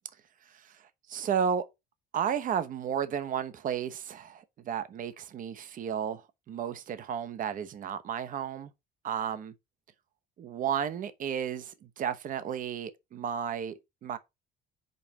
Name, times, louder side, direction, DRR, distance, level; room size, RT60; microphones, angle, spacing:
voice 1, 1.1-1.6 2.1-8.7 9.0-9.5 10.4-14.2, right 8 dB, 50° right, 1.0 m, -33 dB
5.4 x 4.2 x 6.2 m
cardioid pair, 110°, 17 cm